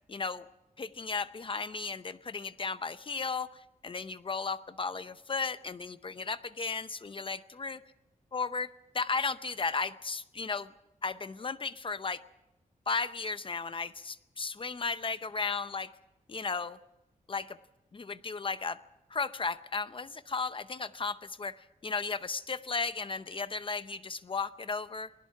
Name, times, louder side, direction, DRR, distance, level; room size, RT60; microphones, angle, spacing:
voice 1, 0.1-0.4 0.8-7.8 8.3-10.7 11.0-12.2 12.9-15.9 16.3-16.8 17.3-17.6 17.9-18.8 19.1-25.1, left 4 dB, 35° left, 13 dB, 0.7 m, -35 dB
29.0 x 20.0 x 4.8 m, 0.91 s
wide cardioid pair, 145°, 14 cm